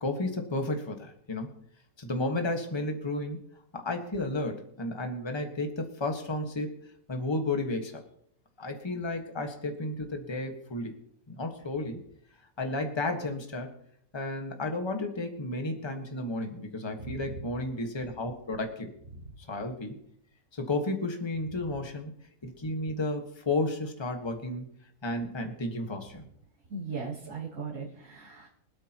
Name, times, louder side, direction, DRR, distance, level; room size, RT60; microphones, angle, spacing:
voice 1, 0.0-1.5 2.0-3.4 3.7-6.7 7.1-8.0 8.6-10.9 11.3-12.0 12.6-13.7 14.1-18.9 19.5-20.0 20.5-22.1 22.4-24.6 25.0-26.2, left 2 dB, 20° left, 4 dB, 1.5 m, -32 dB
voice 2, 17.0-17.5 26.7-28.5, right 4 dB, 55° right, -7 dB, 3.2 m, -38 dB
24.5 x 8.8 x 3.0 m, 0.68 s
omnidirectional pair, 1.6 m